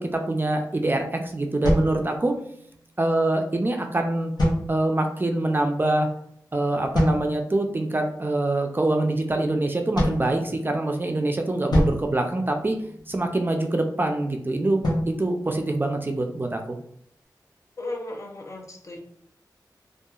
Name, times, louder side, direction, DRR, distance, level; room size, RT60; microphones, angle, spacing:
voice 1, 0.0-2.3 3.0-4.3 4.7-6.1 6.5-12.8 13.1-16.8, right 2 dB, 30° right, 4 dB, 0.4 m, -25 dB
sound 1, 1.6-2.7 4.4-5.2 6.9-7.6 10.0-11.0 11.7-13.2 14.8-16.3, equal, 70° left, 0.8 m, -27 dB
voice 2, 17.8-19.0, left 2 dB, 40° left, 1 dB, 0.6 m, -35 dB
2.8 x 2.3 x 2.3 m, 0.69 s
wide cardioid pair, 65°, 7 cm